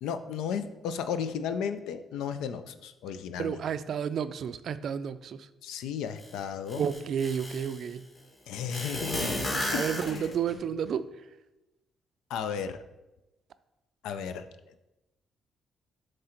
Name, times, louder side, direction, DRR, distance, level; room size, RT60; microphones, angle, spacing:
voice 1, 0.0-3.6 5.6-6.8 8.5-9.3 9.7-10.3 12.3-12.8 14.0-14.5, left 7 dB, 90° left, 0.4 m, -34 dB
voice 2, 3.4-5.5 6.8-8.1 9.7-11.1, right 7 dB, 65° right, 0.3 m, -31 dB
sound 1, 6.2-6.3 6.7-7.8 8.7-10.5, left 1 dB, 40° left, 2.1 m, -32 dB
7.5 x 3.3 x 4.4 m
cardioid pair, 90°, 0 cm